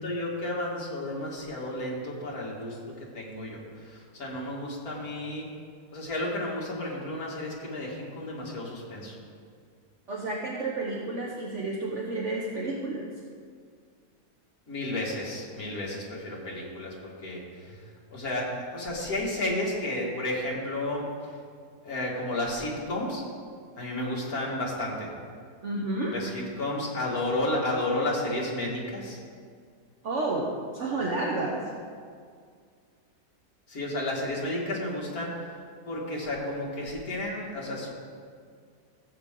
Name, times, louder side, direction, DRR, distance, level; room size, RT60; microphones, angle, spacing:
voice 1, 0.0-2.8 3.1-5.4 5.9-9.2 14.7-17.8 18.1-21.1 21.8-23.2 23.8-25.1 26.1-29.2 33.7-35.4 35.9-37.9, left 1 dB, 60° left, -3 dB, 2.5 m, -32 dB
voice 2, 10.1-13.1 25.6-26.1 30.0-31.7, right 2 dB, 50° right, -2 dB, 1.2 m, -31 dB
15.0 x 7.8 x 3.7 m, 2.1 s
omnidirectional pair, 1.8 m